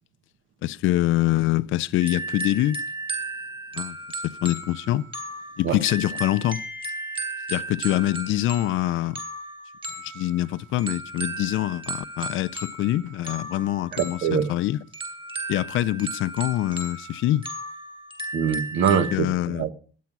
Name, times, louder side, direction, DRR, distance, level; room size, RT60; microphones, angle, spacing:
voice 1, 0.6-2.8 3.7-5.1 5.6-6.6 7.5-9.2 10.0-14.8 15.5-17.5 19.1-19.7, left 15 dB, 85° left, 0.5 m, -25 dB
sound 1, 2.0-19.2, right 2 dB, 25° right, 3.7 m, -35 dB
voice 2, 13.9-14.5 18.3-19.7, right 7 dB, 75° right, 1.2 m, -24 dB
12.5 x 9.3 x 5.9 m
cardioid pair, 90°, 20 cm